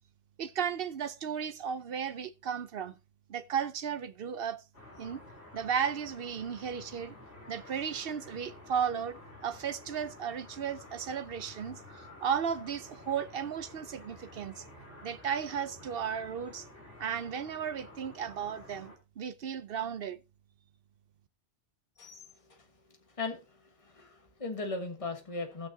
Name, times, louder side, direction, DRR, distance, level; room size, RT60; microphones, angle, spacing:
voice 1, 0.4-3.0 3.3-4.6 5.0-5.2 5.5-7.1 7.5-11.8 12.2-14.6 15.0-16.7 17.0-20.2, right 7 dB, 60° right, 0.8 m, -34 dB
sound 1, 4.7-19.0, left 1 dB, 60° left, 3.8 m, -51 dB
voice 2, 23.2-25.7, left 3 dB, 30° left, 1.6 m, -38 dB
18.5 x 6.3 x 2.7 m
omnidirectional pair, 1.2 m